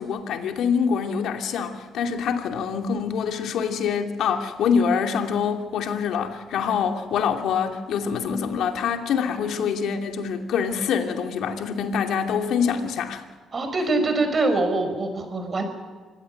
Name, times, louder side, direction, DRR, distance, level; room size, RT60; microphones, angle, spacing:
voice 1, 0.0-13.2, left 6 dB, 80° left, 4 dB, 2.6 m, -25 dB
voice 2, 13.5-15.6, right 2 dB, 35° right, 7 dB, 5.6 m, -24 dB
25.5 x 16.5 x 9.3 m, 1.5 s
cardioid pair, 90°, 0 cm